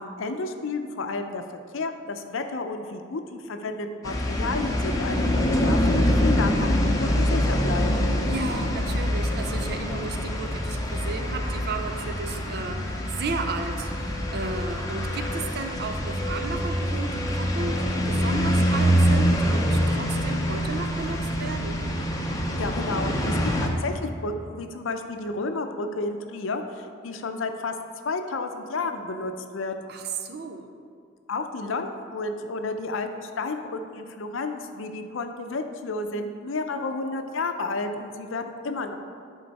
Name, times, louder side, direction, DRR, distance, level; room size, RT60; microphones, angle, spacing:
voice 1, 0.0-1.4 1.7-7.9 22.6-27.7 28.0-29.7 31.3-39.0, left 3 dB, 80° left, 6 dB, 0.6 m, -31 dB
sound 1, 4.0-23.7, equal, 20° left, 0.7 m, -25 dB
voice 2, 8.3-21.8 29.9-30.7, right 4 dB, 55° right, 6 dB, 0.5 m, -34 dB
11.0 x 3.8 x 4.1 m, 2.3 s
head